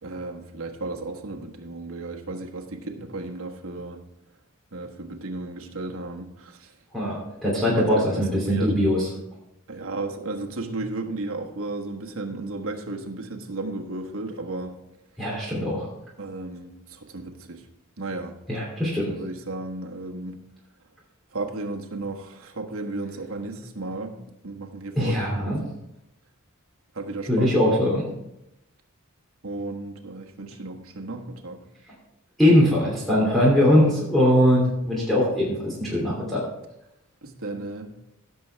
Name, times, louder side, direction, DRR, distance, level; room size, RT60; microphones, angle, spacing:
voice 1, 0.0-4.0 4.7-6.7 7.8-8.7 9.7-14.7 16.2-17.6 18.0-18.3 19.1-20.4 21.3-24.1 24.4-25.6 26.9-27.5 29.4-31.6 37.2-37.9, right 2 dB, 70° right, 2 dB, 1.4 m, -34 dB
voice 2, 6.9-9.1 15.2-15.8 18.5-19.1 25.0-25.6 27.3-28.1 32.4-36.4, left 1 dB, ahead, -6 dB, 2.9 m, -21 dB
17.0 x 6.9 x 3.4 m, 0.85 s
head